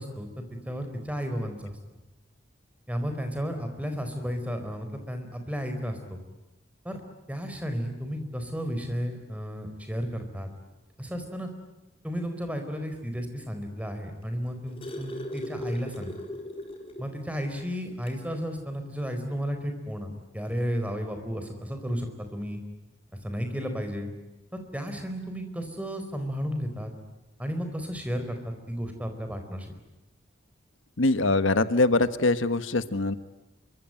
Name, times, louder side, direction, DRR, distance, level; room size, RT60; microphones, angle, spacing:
voice 1, 0.0-1.8 2.9-6.2 6.8-7.0 7.3-10.5 11.0-11.5 12.0-16.1 17.0-22.6 23.2-24.1 24.5-26.9 27.4-29.7, equal, 5° right, 6 dB, 4.4 m, -33 dB
sound 1, 14.2-17.1 17.5-17.6 18.0-18.2 19.4-19.5, left 1 dB, 30° left, 4.1 m, -38 dB
voice 2, 31.0-33.2, left 2 dB, 85° left, 13 dB, 1.3 m, -23 dB
27.0 x 24.5 x 8.9 m, 1.0 s
head